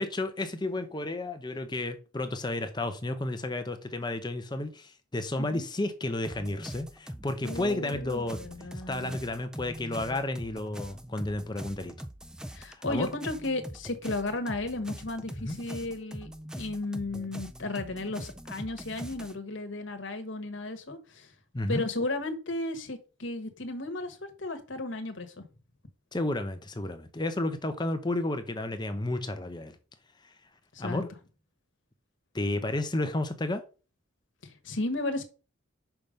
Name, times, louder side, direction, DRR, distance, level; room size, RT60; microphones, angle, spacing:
voice 1, 0.0-8.4 8.9-11.9 12.7-13.1 15.4-15.6 21.5-21.8 26.1-29.8 30.2-30.3 30.8-31.1 32.3-33.6, left 2 dB, 20° left, 0.8 m, -32 dB
sound 1, 6.2-19.3, equal, 5° right, 0.4 m, -42 dB
voice 2, 7.4-9.2 12.5-16.3 16.5-21.3 21.7-25.4 30.7-31.0 34.4-35.2, left 2 dB, 65° left, 1.4 m, -34 dB
5.9 x 5.2 x 5.2 m
head